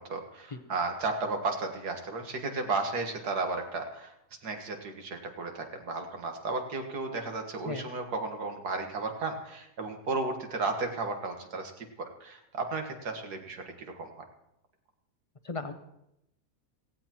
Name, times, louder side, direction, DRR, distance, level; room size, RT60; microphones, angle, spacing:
voice 1, 0.0-4.1 4.4-14.2, right 3 dB, 90° right, 4 dB, 2.1 m, -34 dB
voice 2, 0.5-0.6 7.7-7.9 15.4-15.7, left 3 dB, 35° left, 8 dB, 0.5 m, -35 dB
17.5 x 16.0 x 3.0 m, 0.84 s
omnidirectional pair, 1.6 m